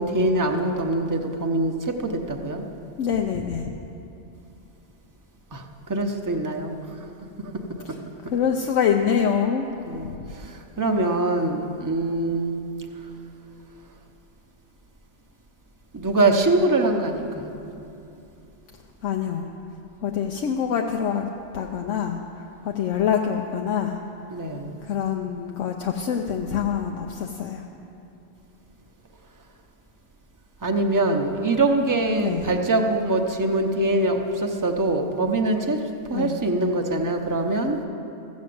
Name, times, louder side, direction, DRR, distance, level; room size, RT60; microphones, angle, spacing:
voice 1, 0.0-2.7 5.5-7.1 7.4-7.8 9.8-12.5 15.9-17.5 24.3-24.8 30.6-35.8 36.1-37.8, right 2 dB, 20° right, 3 dB, 0.7 m, -24 dB
voice 2, 3.0-3.7 8.3-9.7 19.0-19.5 20.0-21.3 21.5-22.2 22.6-24.0 24.8-27.6 32.2-32.5 36.1-36.3, left 7 dB, 80° left, 2 dB, 1.0 m, -25 dB
14.5 x 7.3 x 7.7 m, 2.8 s
omnidirectional pair, 1.3 m